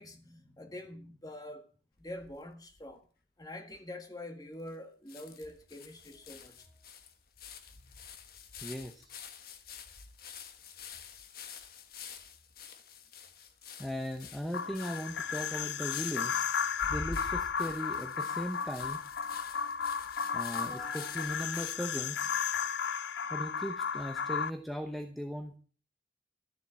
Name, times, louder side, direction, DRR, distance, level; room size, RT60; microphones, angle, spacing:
voice 1, 0.0-1.7 2.0-3.0 3.4-6.7, left 1 dB, 20° left, 1.8 m, -45 dB
sound 1, 2.0-2.9 3.4-3.5 3.7-3.8 4.7-4.8 5.1-21.8, left 5 dB, 55° left, 1.4 m, -48 dB
voice 2, 8.6-9.1 13.8-16.5 16.9-19.0 20.3-22.3 23.3-25.6, equal, ahead, 0.9 m, -38 dB
sound 2, 14.5-24.5, left 6 dB, 75° left, 0.5 m, -34 dB
13.0 x 7.6 x 7.5 m
head